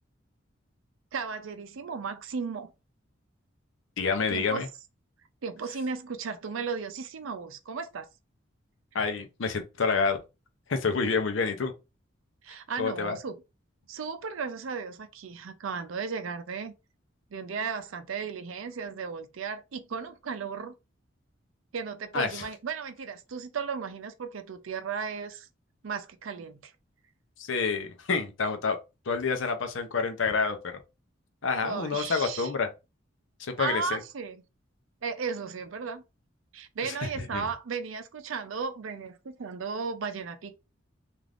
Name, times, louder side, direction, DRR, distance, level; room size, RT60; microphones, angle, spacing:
voice 1, 1.1-2.7 4.3-4.6 5.4-8.1 12.4-13.4 13.9-16.7 17.3-20.7 21.7-25.5 25.8-26.7 31.6-32.5 33.6-34.4 35.0-36.0 36.5-40.5, right 5 dB, 90° right, 0.5 m, -35 dB
voice 2, 4.0-4.7 8.9-10.2 10.7-11.7 12.8-13.2 22.1-22.4 27.4-28.8 29.1-30.8 31.4-32.7 33.4-34.0 37.3-37.4, left 5 dB, 75° left, 0.6 m, -28 dB
3.3 x 2.5 x 2.4 m
head